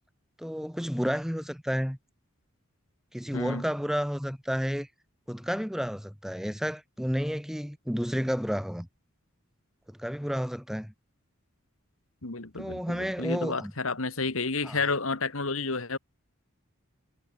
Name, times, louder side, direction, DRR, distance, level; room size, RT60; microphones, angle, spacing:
voice 1, 0.4-2.0 3.1-4.9 5.3-8.9 9.9-10.9 12.6-13.7 14.6-14.8, equal, ahead, 3.3 m, -31 dB
voice 2, 12.2-16.0, left 4 dB, 75° left, 2.3 m, -31 dB
head